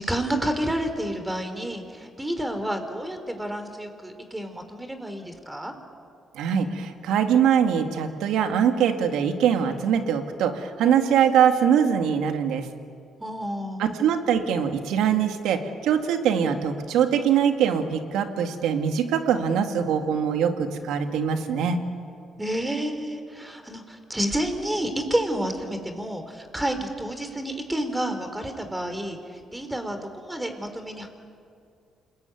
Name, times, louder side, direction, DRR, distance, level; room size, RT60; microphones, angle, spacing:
voice 1, 0.0-5.7 13.2-14.0 22.4-31.1, right 1 dB, 10° right, 7 dB, 4.0 m, -30 dB
voice 2, 6.3-12.7 13.8-21.8, right 8 dB, 85° right, 6 dB, 2.2 m, -23 dB
28.5 x 21.5 x 9.5 m, 2.3 s
cardioid pair, 90°, 0 cm